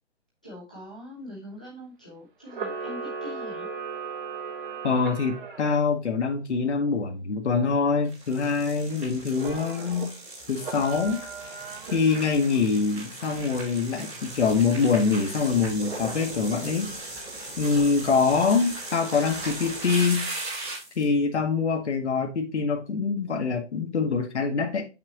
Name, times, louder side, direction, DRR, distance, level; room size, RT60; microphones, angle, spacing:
voice 1, 0.4-3.7, left 1 dB, 5° left, 0.6 m, -43 dB
Camera, 2.5-5.8 9.3-10.1 10.6-12.4, right 5 dB, 50° right, 1.1 m, -37 dB
voice 2, 4.8-10.1 10.5-11.2 11.9-16.9 17.6-20.3 21.0-24.8, left 5 dB, 80° left, 1.4 m, -24 dB
sound 1, 8.0-21.0, right 2 dB, 10° right, 1.6 m, -38 dB
6.2 x 5.9 x 2.9 m
hypercardioid pair, 175°, 34 cm